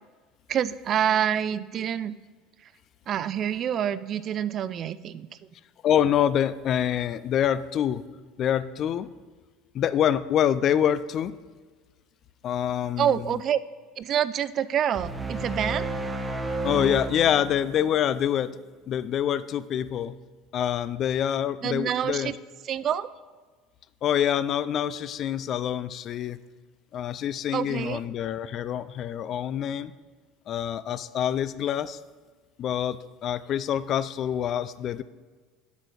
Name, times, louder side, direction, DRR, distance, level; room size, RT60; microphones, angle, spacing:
voice 1, 0.5-2.2 2.6-2.7 3.1-5.3 13.0-13.6 14.0-15.9 21.6-22.3 22.6-23.1 27.5-28.0, right 9 dB, 45° right, 16 dB, 0.4 m, -27 dB
voice 2, 5.8-8.0 8.4-9.1 9.7-11.3 12.4-13.1 16.6-18.5 18.9-20.2 20.5-22.3 24.0-26.4 26.9-29.9 30.5-32.0 32.6-35.0, left 10 dB, 50° left, 15 dB, 0.4 m, -26 dB
sound 1, 14.9-18.3, right 2 dB, 15° right, 0.9 m, -32 dB
8.2 x 5.0 x 6.2 m, 1.4 s
hypercardioid pair, 75°, 0 cm